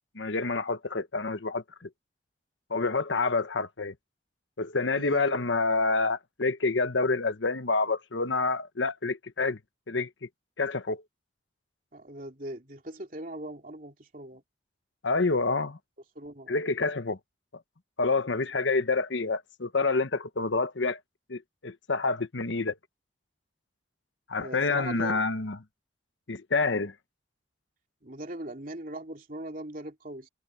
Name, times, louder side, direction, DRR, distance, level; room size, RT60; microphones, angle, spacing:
voice 1, 0.1-1.9 2.7-3.9 4.6-9.6 9.9-10.3 10.6-11.0 15.0-15.8 16.5-17.2 18.0-21.0 21.3-22.7 24.3-25.6 26.3-26.9, left 3 dB, 75° left, 1.2 m, -28 dB
voice 2, 5.0-5.3 11.9-14.4 16.1-16.5 24.4-25.3 28.0-30.3, right 1 dB, 45° right, 3.1 m, -40 dB
head